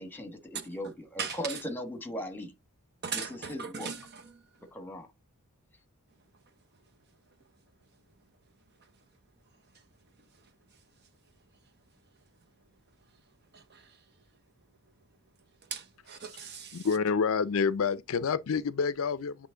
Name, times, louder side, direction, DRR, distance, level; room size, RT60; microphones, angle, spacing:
voice 1, 0.0-2.5 3.1-3.9 4.7-5.1, equal, 10° left, 1.2 m, -38 dB
voice 2, 1.2-1.6 3.0-4.3 13.5-14.0 15.6-16.9, right 6 dB, 50° right, 0.9 m, -39 dB
voice 3, 16.7-19.5, left 5 dB, 65° left, 0.5 m, -28 dB
8.1 x 3.1 x 3.7 m
head